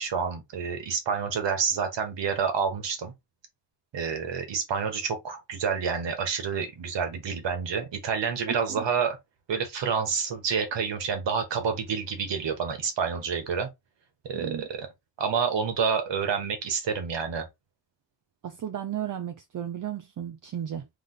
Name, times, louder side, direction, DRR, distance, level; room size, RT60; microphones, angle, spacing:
voice 1, 0.0-3.1 3.9-9.2 9.5-13.7 14.3-14.9 15.2-17.5, right 6 dB, 80° right, 1.5 m, -28 dB
voice 2, 8.5-8.9 14.3-14.7 18.4-20.9, right 10 dB, 50° right, 0.5 m, -34 dB
3.5 x 3.4 x 3.9 m
wide cardioid pair, 165°, 42 cm